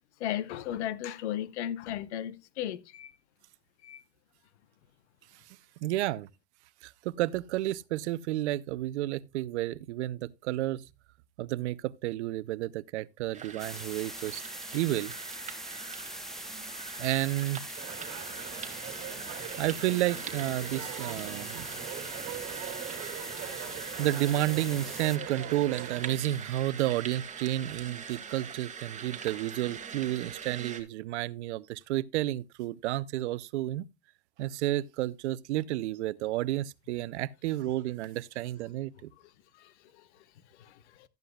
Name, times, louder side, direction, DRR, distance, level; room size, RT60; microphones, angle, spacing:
voice 1, 0.2-3.1 3.8-4.0 40.6-40.7, left 11 dB, 85° left, 1.0 m, -35 dB
voice 2, 5.8-6.3 6.8-10.9 11.4-14.4 14.7-15.2 17.0-17.7 19.6-21.7 24.0-33.9 34.4-39.1, right 15 dB, 90° right, 0.6 m, -31 dB
sound 1, 13.3-30.8, right 6 dB, 20° right, 2.1 m, -43 dB
sound 2, 13.6-25.2, equal, ahead, 0.7 m, -42 dB
sound 3, 17.8-26.1, right 10 dB, 45° right, 2.5 m, -42 dB
13.0 x 9.9 x 2.3 m
supercardioid pair, 115°, 33 cm